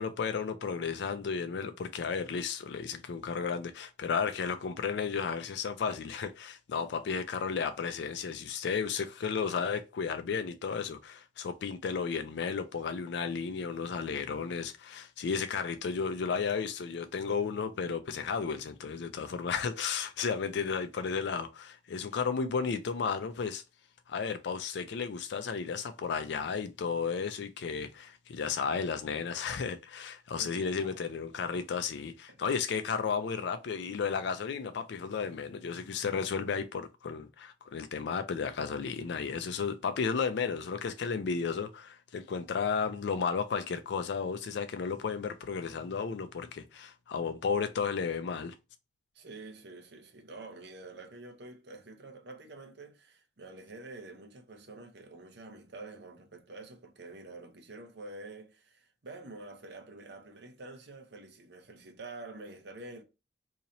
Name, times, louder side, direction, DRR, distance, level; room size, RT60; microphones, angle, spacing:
voice 1, 0.0-23.6 24.1-48.5, left 5 dB, 65° left, 0.4 m, -33 dB
voice 2, 30.4-31.0 32.3-32.4 49.1-63.0, right 2 dB, 70° right, 0.8 m, -47 dB
2.9 x 2.8 x 3.9 m
head